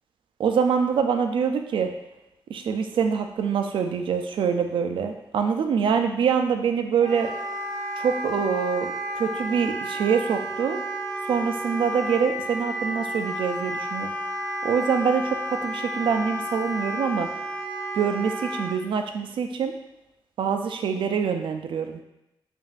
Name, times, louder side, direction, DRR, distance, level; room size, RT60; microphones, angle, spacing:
voice 1, 0.4-1.9 2.5-7.3 8.0-10.8 11.2-14.1 14.6-17.3 17.9-19.7 20.4-22.0, right 6 dB, 75° right, 6 dB, 0.4 m, -25 dB
Wind instrument woodwind instrument, 7.0-18.7, right 1 dB, 5° left, 1.3 m, -32 dB
5.1 x 2.6 x 2.4 m, 0.88 s
wide cardioid pair, 130°, 9 cm